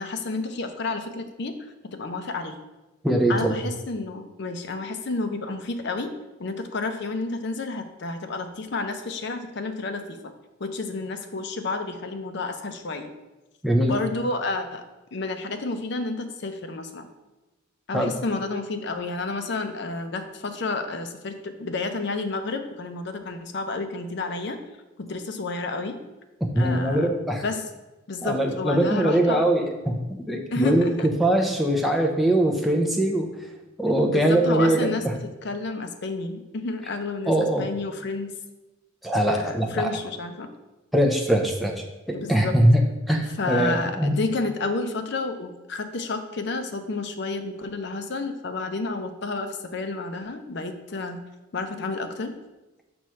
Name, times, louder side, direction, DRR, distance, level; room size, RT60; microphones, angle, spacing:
voice 1, 0.0-2.6 3.3-6.1 6.4-10.2 10.6-13.1 13.9-14.8 15.1-17.1 17.9-24.6 25.0-26.0 26.6-27.1 27.4-27.7 28.1-29.4 30.5-31.1 34.1-38.3 39.3-40.5 42.1-42.6 43.4-51.2 51.5-52.4, left 3 dB, 55° left, 7 dB, 0.6 m, -30 dB
voice 2, 3.0-3.5 13.6-13.9 17.9-18.1 26.5-27.4 28.2-30.9 31.2-33.3 33.8-35.1 37.3-37.7 39.0-39.9 40.9-41.7 42.1-44.2, right 1 dB, ahead, 1 dB, 0.6 m, -22 dB
6.2 x 3.1 x 5.6 m, 1.1 s
head